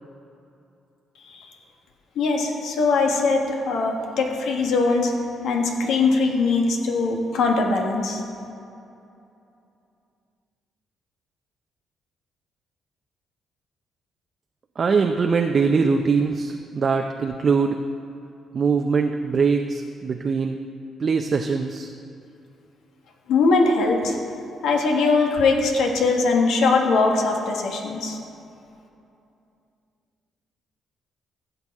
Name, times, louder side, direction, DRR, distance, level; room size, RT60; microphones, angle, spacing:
voice 1, 2.2-5.1 5.4-8.2 23.3-24.1 24.6-28.2, left 3 dB, 80° left, 2 dB, 1.4 m, -21 dB
voice 2, 14.8-17.8 18.5-20.6 21.0-21.9, right 5 dB, 45° right, 4 dB, 0.5 m, -22 dB
15.5 x 6.8 x 3.6 m, 2.7 s
cardioid pair, 90°, 0 cm